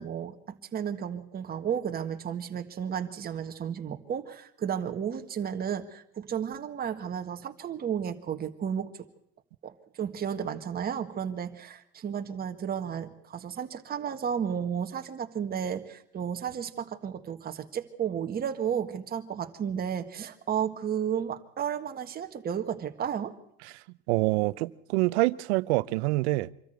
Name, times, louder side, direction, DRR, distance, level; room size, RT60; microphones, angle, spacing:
voice 1, 0.0-8.9 9.6-23.3, right 8 dB, 30° right, 1.6 m, -33 dB
voice 2, 24.1-26.5, right 21 dB, 70° right, 0.7 m, -26 dB
25.0 x 13.5 x 8.0 m
supercardioid pair, 120°, 33 cm